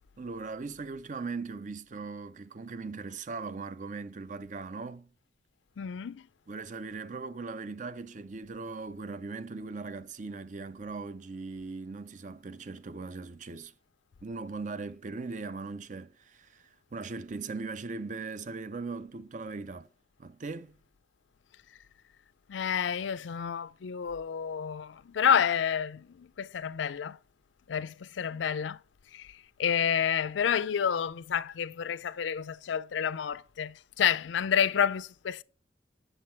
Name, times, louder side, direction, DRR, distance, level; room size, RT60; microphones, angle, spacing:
voice 1, 0.2-5.1 6.5-13.7 14.2-19.9 20.2-20.7, right 4 dB, 45° right, 0.5 m, -39 dB
voice 2, 5.8-6.2 22.5-27.2 27.7-28.8 29.1-29.2 29.6-35.4, left 8 dB, 80° left, 0.4 m, -29 dB
7.6 x 6.9 x 4.4 m
head